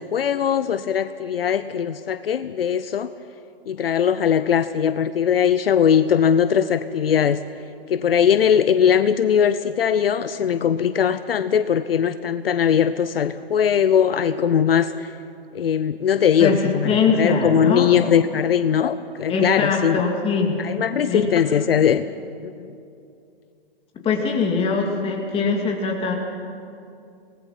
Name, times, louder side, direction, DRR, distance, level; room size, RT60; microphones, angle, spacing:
voice 1, 0.0-3.1 3.7-7.4 7.9-14.9 15.5-16.9 17.2-20.0 20.6-22.0 22.4-22.5, left 8 dB, 70° left, 12 dB, 0.7 m, -20 dB
voice 2, 16.4-17.9 19.3-20.6 21.1-21.3 24.0-26.1, left 4 dB, 20° left, 1 dB, 2.7 m, -22 dB
25.5 x 19.0 x 5.9 m, 2.5 s
figure-of-eight pair, 125°, 30 cm